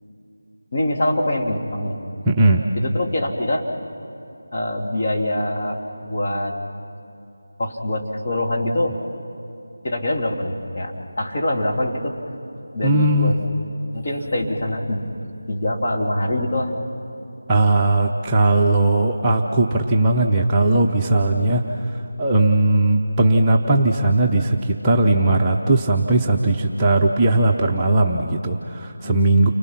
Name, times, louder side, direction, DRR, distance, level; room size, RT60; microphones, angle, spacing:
voice 1, 0.7-2.0 2.7-3.7 4.5-6.6 7.6-9.0 9.8-10.9 11.2-12.2 12.7-13.4 13.9-15.1 15.5-16.7 21.3-21.5 29.0-29.3, left 1 dB, 40° left, -2 dB, 2.7 m, -24 dB
voice 2, 2.3-2.6 12.8-13.3 17.5-21.6 22.2-29.5, right 2 dB, 15° right, -3 dB, 0.9 m, -18 dB
30.0 x 24.0 x 5.9 m, 2.8 s
figure-of-eight pair, 165°, 0 cm